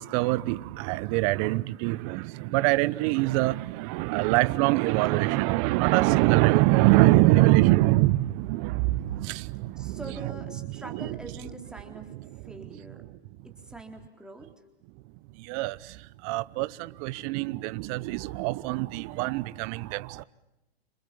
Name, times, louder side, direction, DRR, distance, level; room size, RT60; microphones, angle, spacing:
voice 1, 0.0-10.3 10.8-11.2 11.9-12.4 15.4-20.2, right 19 dB, 35° right, 0.9 m, -24 dB
voice 2, 9.8-12.1 12.4-13.0 13.4-14.5, right 1 dB, ahead, 4.0 m, -44 dB
29.0 x 27.5 x 7.1 m
hypercardioid pair, 125°, 33 cm